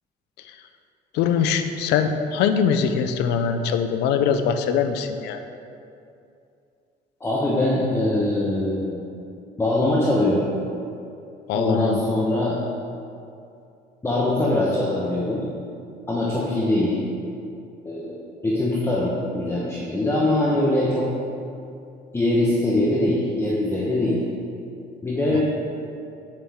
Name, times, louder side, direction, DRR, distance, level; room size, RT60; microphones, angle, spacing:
voice 1, 1.1-5.4 11.5-12.0 25.3-25.4, left 7 dB, 90° left, 8 dB, 0.6 m, -22 dB
voice 2, 7.2-9.2 9.6-10.5 11.5-12.6 14.0-15.4 16.1-17.0 17.8-18.2 18.4-21.1 22.1-24.2 25.0-25.4, left 1 dB, 15° left, -5 dB, 1.1 m, -22 dB
8.6 x 7.4 x 3.6 m, 2.6 s
cardioid pair, 110°, 17 cm